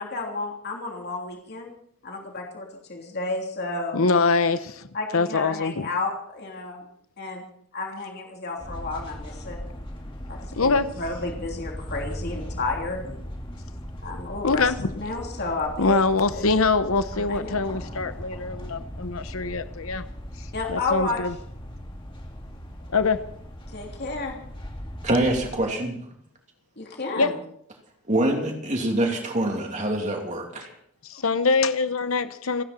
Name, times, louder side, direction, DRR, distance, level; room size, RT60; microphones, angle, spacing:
voice 1, 0.0-1.7 2.0-4.0 4.9-6.8 7.2-7.4 7.7-9.6 10.3-13.2 14.0-16.0 16.3-16.4 17.1-17.6 20.5-21.2 23.7-24.3 26.8-27.4 31.1-31.2, left 3 dB, 45° left, 0 dB, 3.2 m, -32 dB
voice 2, 3.9-4.8 5.1-5.9 10.6-10.9 14.4-14.9 15.8-20.0 20.7-21.3 22.9-23.2 27.2-27.3 31.0-32.6, left 4 dB, 65° left, 11 dB, 0.9 m, -23 dB
sound 1, 8.6-25.6, equal, 20° left, 2.2 m, -38 dB
voice 3, 25.0-26.0 28.1-30.7, right 1 dB, 30° right, 2 dB, 3.0 m, -25 dB
29.0 x 9.9 x 4.4 m, 0.66 s
head